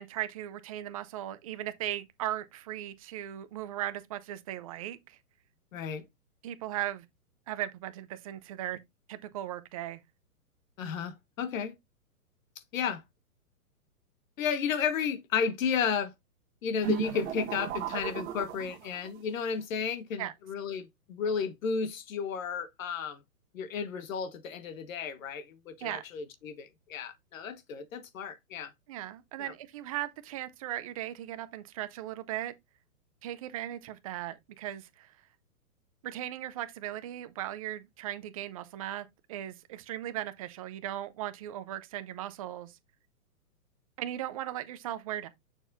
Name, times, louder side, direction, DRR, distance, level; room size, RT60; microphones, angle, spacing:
voice 1, 0.0-5.2 6.4-7.0 7.5-8.8 9.1-10.0 20.2-20.3 25.8-26.0 28.9-32.5 33.2-35.1 36.0-42.7 44.0-45.3, right 13 dB, 25° right, 0.5 m, -37 dB
voice 2, 5.7-6.1 10.8-11.7 12.7-13.0 14.4-16.1 16.6-23.2 23.5-28.7 29.4-29.5, left 6 dB, 60° left, 1.3 m, -33 dB
sound 1, 16.8-19.2, right 9 dB, 45° right, 1.6 m, -35 dB
7.0 x 6.3 x 2.6 m
hypercardioid pair, 145°, 46 cm